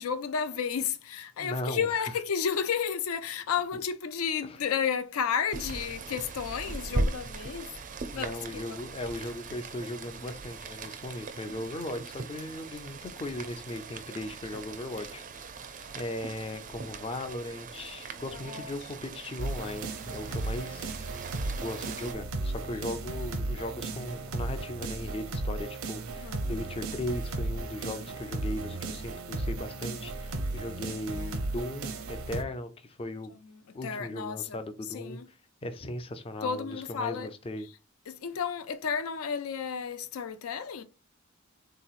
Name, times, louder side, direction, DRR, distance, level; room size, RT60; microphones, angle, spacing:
voice 1, 0.0-7.7 8.1-8.8 18.1-18.7 26.2-26.4 33.8-34.6 34.9-35.3 36.4-37.3 38.1-40.8, left 7 dB, 80° left, 0.4 m, -32 dB
voice 2, 1.4-1.9 4.4-4.6 8.1-15.2 15.9-20.9 21.6-33.3 33.7-35.4 35.6-37.7, left 1 dB, 25° left, 0.4 m, -38 dB
Rain, 5.5-22.1, right 3 dB, 40° right, 0.4 m, -39 dB
sound 1, 19.4-32.4, right 2 dB, 90° right, 0.7 m, -35 dB
3.6 x 2.9 x 2.4 m
head